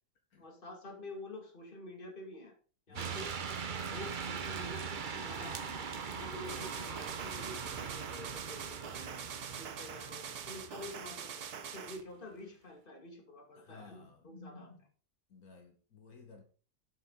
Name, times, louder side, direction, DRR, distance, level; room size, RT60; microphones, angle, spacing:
voice 1, 0.4-2.5 2.9-3.3 3.7-9.2 9.6-14.9, left 2 dB, 35° left, 2.5 m, -48 dB
voice 2, 2.9-3.3 13.6-14.3 15.3-16.4, left 4 dB, 70° left, 2.1 m, -55 dB
sound 1, 3.0-11.9, right 6 dB, 40° right, 0.8 m, -41 dB
sound 2, 6.5-12.0, right 7 dB, 80° right, 1.6 m, -44 dB
11.5 x 8.9 x 3.9 m
omnidirectional pair, 1.6 m